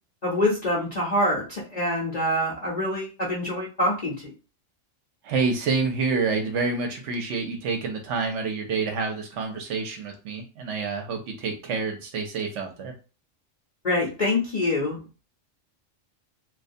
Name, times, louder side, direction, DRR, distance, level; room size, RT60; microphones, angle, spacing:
voice 1, 0.2-4.3 13.8-15.0, left 1 dB, 40° left, -4 dB, 0.6 m, -25 dB
voice 2, 5.2-12.9, right 4 dB, 70° right, 3 dB, 0.9 m, -28 dB
2.4 x 2.1 x 2.5 m, 0.33 s
omnidirectional pair, 1.3 m